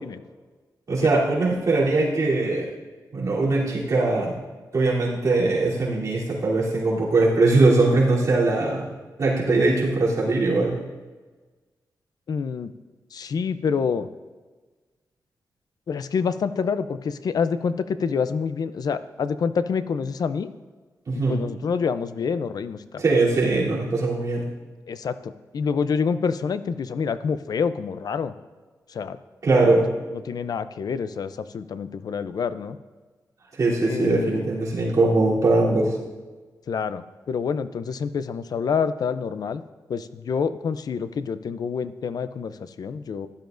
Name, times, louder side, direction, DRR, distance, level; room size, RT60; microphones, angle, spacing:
voice 1, 0.9-2.7 3.1-4.4 4.7-8.9 9.2-10.8 21.1-21.4 23.0-24.5 29.4-29.9 33.5-35.9, right 2 dB, 55° right, -6 dB, 3.2 m, -21 dB
voice 2, 12.3-12.7 13.1-14.1 15.9-20.5 21.1-23.0 24.9-28.3 28.9-29.2 29.6-29.8 30.2-32.8 33.8-34.4 36.7-39.6 39.9-43.3, left 6 dB, 65° left, 13 dB, 0.5 m, -27 dB
15.5 x 11.5 x 2.6 m, 1.3 s
wide cardioid pair, 100°, 7 cm